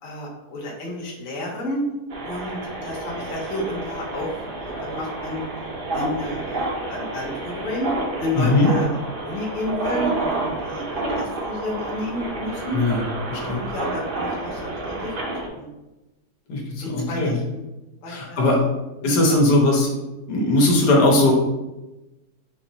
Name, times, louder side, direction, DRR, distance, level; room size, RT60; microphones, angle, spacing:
voice 1, 0.0-1.8 2.2-4.3 4.6-5.5 5.9-7.9 8.2-8.9 9.2-12.8 13.4-15.1 15.4-15.6 16.8-17.6 18.0-18.4 19.0-19.4, left 1 dB, 40° left, -3 dB, 0.9 m, -31 dB
sound 1, 2.1-15.5, right 2 dB, 55° right, 0.6 m, -29 dB
voice 2, 8.4-8.7 12.7-13.0 13.3-13.6 16.5-17.4 18.1-18.6 19.0-19.9 20.3-21.3, left 2 dB, 75° left, -1 dB, 1.4 m, -19 dB
4.6 x 2.9 x 2.7 m, 1.0 s
omnidirectional pair, 1.8 m